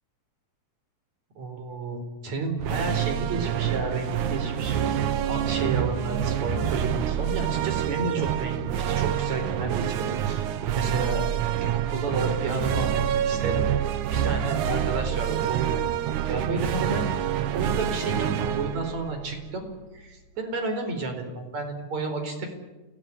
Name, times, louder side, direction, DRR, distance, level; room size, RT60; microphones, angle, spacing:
voice 1, 1.4-5.0 5.2-10.5 10.7-11.2 11.6-13.8 14.1-15.8 16.2-17.1 17.5-19.7 19.9-22.5, right 3 dB, 65° right, 6 dB, 5.7 m, -31 dB
sound 1, 2.6-20.0, right 10 dB, 85° right, 2.7 m, -27 dB
28.0 x 18.0 x 9.9 m, 1.2 s
omnidirectional pair, 3.4 m